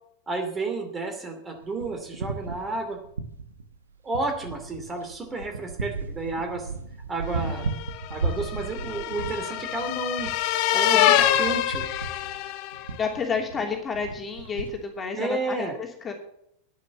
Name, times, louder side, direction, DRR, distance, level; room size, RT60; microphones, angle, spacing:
voice 1, 0.3-3.0 4.0-6.7 7.1-7.7 8.1-10.3 10.7-11.8 15.1-15.7, right 3 dB, 20° right, 4 dB, 2.5 m, -31 dB
sound 1, 1.5-3.8 4.1-14.8, right 4 dB, 70° right, 1.5 m, -35 dB
sound 2, 7.5-12.9, left 12 dB, 45° left, 1.0 m, -25 dB
voice 2, 13.0-16.1, left 5 dB, 20° left, 2 dB, 2.9 m, -30 dB
11.0 x 10.0 x 7.3 m, 0.71 s
figure-of-eight pair, 90°, 0 cm